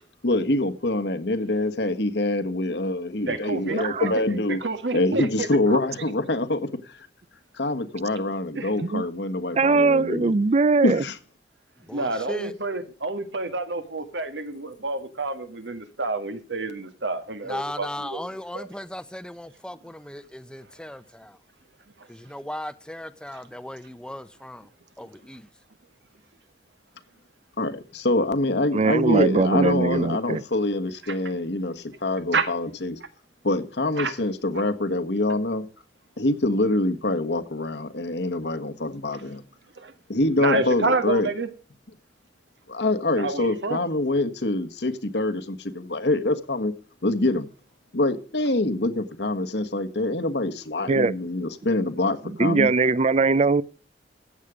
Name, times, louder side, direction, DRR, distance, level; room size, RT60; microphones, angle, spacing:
voice 1, 0.2-4.6 4.9-7.1 7.6-10.3 10.8-11.2 27.6-33.0 33.4-35.6 36.2-39.4 40.1-41.3 42.7-46.7 47.0-47.5 47.9-52.7, left 2 dB, 70° left, 1.4 m, -25 dB
voice 2, 3.3-4.1 4.5-5.8 8.5-8.9 11.9-18.2 18.5-18.7 31.1-31.2 32.3-32.5 34.0-34.1 39.8-39.9 40.4-41.5 43.2-43.8, right 3 dB, 80° right, 1.8 m, -28 dB
voice 3, 3.8-4.1 8.8-9.0 9.6-11.0 28.7-30.4 50.9-51.1 52.4-53.6, right 3 dB, 40° right, 0.5 m, -21 dB
voice 4, 11.8-12.6 17.4-21.4 22.0-24.7 25.0-25.5, left 1 dB, 5° left, 0.8 m, -37 dB
15.0 x 8.5 x 5.0 m
head